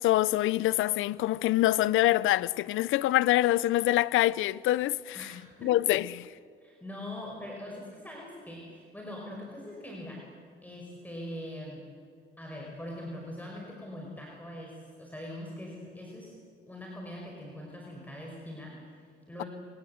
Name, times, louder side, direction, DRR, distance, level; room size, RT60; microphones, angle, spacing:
voice 1, 0.0-5.2 5.6-6.3, left 15 dB, 85° left, 0.6 m, -25 dB
voice 2, 5.1-5.7 6.6-10.3 10.6-11.9 12.4-16.4 16.7-19.5, left 1 dB, 10° left, 5.3 m, -42 dB
26.5 x 18.5 x 8.0 m
cardioid pair, 90°, 20 cm